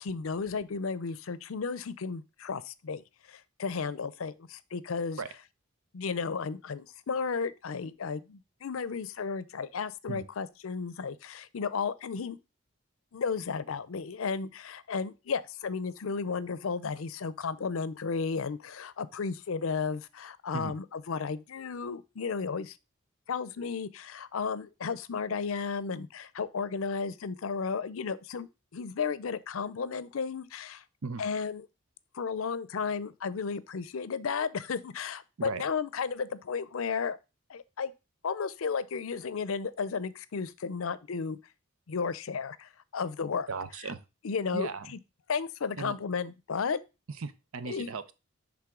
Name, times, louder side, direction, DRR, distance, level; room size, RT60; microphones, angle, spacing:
voice 1, 0.0-5.2 5.9-12.4 13.1-22.8 23.3-30.8 31.2-31.6 32.1-37.2 37.5-37.9 38.2-41.4 41.9-43.5 44.2-44.7 45.3-46.8 47.7-47.9, left 5 dB, 75° left, 0.5 m, -33 dB
voice 2, 43.5-44.0 44.5-44.9 45.8-46.0 47.2-48.1, right 4 dB, 85° right, 0.7 m, -37 dB
10.5 x 3.6 x 3.7 m
head